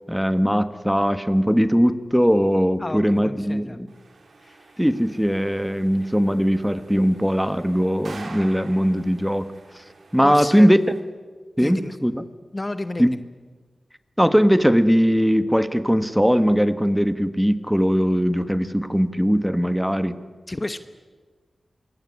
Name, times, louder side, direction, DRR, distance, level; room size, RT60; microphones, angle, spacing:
voice 1, 0.1-3.9 4.8-9.5 10.1-10.8 11.6-12.2 13.0-13.2 14.2-20.2, equal, ahead, 11 dB, 1.3 m, -20 dB
voice 2, 2.8-3.8 4.4-4.7 10.2-10.7 11.6-11.9 12.5-13.2 20.5-20.8, left 2 dB, 25° left, 10 dB, 1.0 m, -31 dB
sound 1, 3.9-11.0, right 3 dB, 75° right, 3.8 m, -46 dB
26.5 x 22.5 x 9.9 m, 1.4 s
wide cardioid pair, 100°, 0 cm